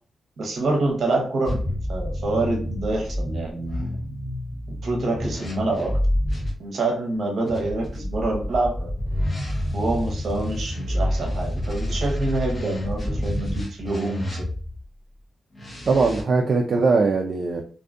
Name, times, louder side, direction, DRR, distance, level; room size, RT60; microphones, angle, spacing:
voice 1, 0.4-1.6 1.9-3.9 4.8-5.9 6.6-8.9 9.7-14.4, right 2 dB, 65° right, 0 dB, 0.8 m, -26 dB
sound 1, 1.4-6.5 7.5-14.8 15.5-16.2, left 1 dB, 30° left, 0.7 m, -28 dB
voice 2, 15.9-17.6, right 4 dB, 50° right, 1 dB, 0.3 m, -20 dB
2.5 x 2.3 x 2.4 m, 0.42 s
wide cardioid pair, 140°, 0 cm